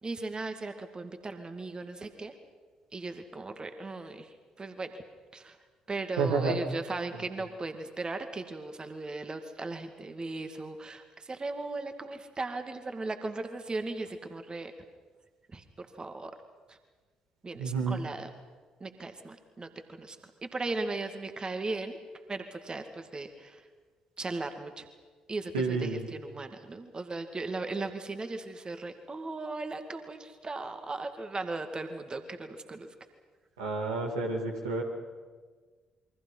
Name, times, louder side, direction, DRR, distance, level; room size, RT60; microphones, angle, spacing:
voice 1, 0.0-2.3 2.9-5.0 5.3-5.6 5.9-14.7 15.5-16.3 16.7-16.8 17.4-18.3 18.8-20.2 20.4-22.0 22.3-23.7 24.2-24.9 25.3-32.9, right 3 dB, 30° right, 7 dB, 2.2 m, -37 dB
voice 2, 6.2-6.6 17.5-18.0 25.5-26.1 33.6-34.8, right 4 dB, 80° right, 0 dB, 2.7 m, -30 dB
28.5 x 23.5 x 5.6 m, 1.4 s
figure-of-eight pair, 45°, 3 cm